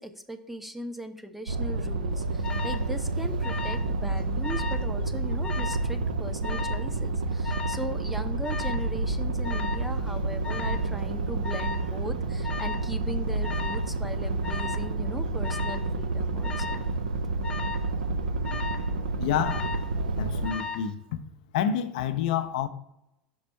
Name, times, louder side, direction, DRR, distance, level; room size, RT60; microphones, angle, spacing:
voice 1, 0.0-16.9, right 1 dB, 5° right, 0.6 m, -39 dB
sound 1, 1.5-20.5, right 2 dB, 70° right, 0.5 m, -29 dB
Alarm, 2.4-2.9 3.4-3.9 4.2-4.9 5.4-5.9 6.4-6.9 7.4-7.9 8.4-8.9 9.4-9.9 10.4-10.9 11.4-11.9 12.4-12.9 13.4-13.9 14.4-14.9 15.4-15.9 16.4-16.9 17.4-17.9 18.4-18.9 19.4-19.9 20.4-20.9, left 6 dB, 20° left, 0.9 m, -36 dB
voice 2, 19.2-19.7 20.2-21.2 21.5-22.7, left 8 dB, 55° left, 0.5 m, -28 dB
5.4 x 5.0 x 4.5 m
figure-of-eight pair, 80°, 5 cm